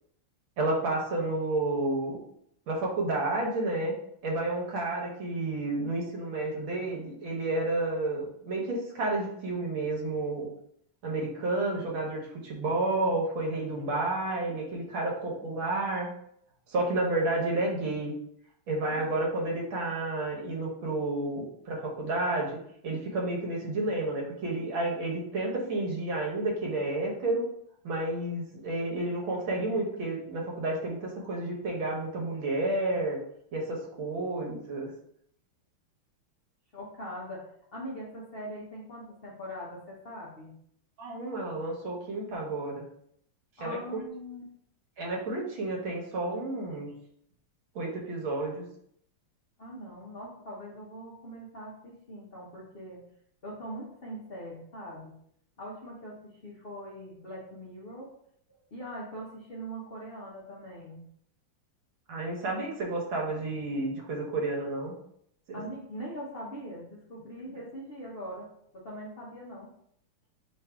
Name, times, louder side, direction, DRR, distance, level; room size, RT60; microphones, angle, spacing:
voice 1, 0.6-2.2 2.7-3.9 4.2-10.5 11.0-16.1 16.7-18.1 18.7-22.5 22.8-27.4 27.8-33.2 33.5-34.9 41.0-42.8 43.6-44.0 45.0-46.9 47.8-48.6 62.1-64.9 65.5-65.6, right 2 dB, 70° right, -1 dB, 1.8 m, -31 dB
voice 2, 36.7-40.5 43.6-44.4 49.6-53.1 53.4-55.1 55.6-58.1 58.7-61.0 65.5-68.5 68.7-69.7, equal, 60° left, -5 dB, 0.6 m, -42 dB
3.7 x 2.6 x 4.5 m, 0.69 s
omnidirectional pair, 2.3 m